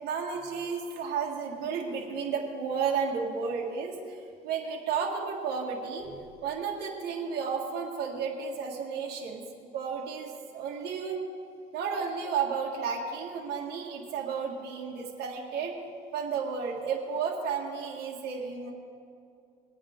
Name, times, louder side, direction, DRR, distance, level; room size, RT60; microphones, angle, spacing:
voice 1, 0.0-4.2 4.4-6.1 6.4-9.4 9.7-11.2 11.7-15.7 16.1-18.7, right 6 dB, 75° right, -2 dB, 1.9 m, -32 dB
21.0 x 8.7 x 3.8 m, 2.3 s
cardioid pair, 110°, 17 cm